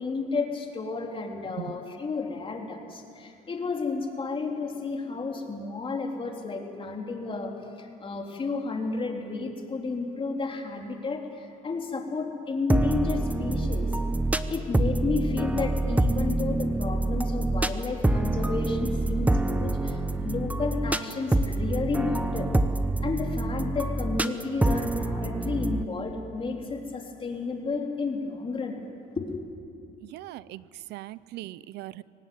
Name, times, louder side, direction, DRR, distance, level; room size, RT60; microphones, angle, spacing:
voice 1, 0.0-7.5 7.8-13.9 14.5-22.5 23.0-28.8 29.2-29.4, left 4 dB, 30° left, 2 dB, 3.5 m, -32 dB
voice 2, 1.5-1.8 30.0-32.0, right 16 dB, 80° right, 18 dB, 0.6 m, -40 dB
sound 1, 12.7-25.8, right 2 dB, 10° right, 0.9 m, -26 dB
24.0 x 18.5 x 9.4 m, 2.5 s
cardioid pair, 110°, 17 cm